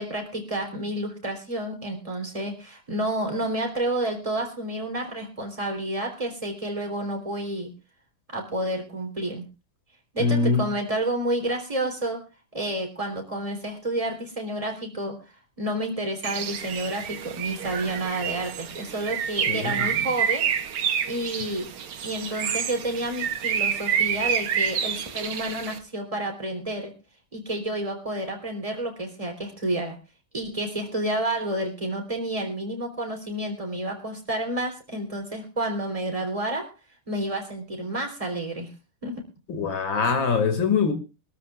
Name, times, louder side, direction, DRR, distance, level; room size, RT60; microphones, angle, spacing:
voice 1, 0.0-7.7 8.3-9.4 10.1-12.2 12.5-15.2 15.6-20.5 21.1-21.7 22.0-26.9 27.3-30.0 30.3-36.7 37.1-38.7 39.0-39.2, right 1 dB, 15° right, 3.7 m, -30 dB
voice 2, 10.2-10.7 19.5-20.0 39.5-40.9, left 5 dB, 60° left, 3.1 m, -23 dB
Bird, 16.2-25.8, right 8 dB, 80° right, 2.1 m, -28 dB
25.0 x 13.0 x 2.5 m
omnidirectional pair, 2.3 m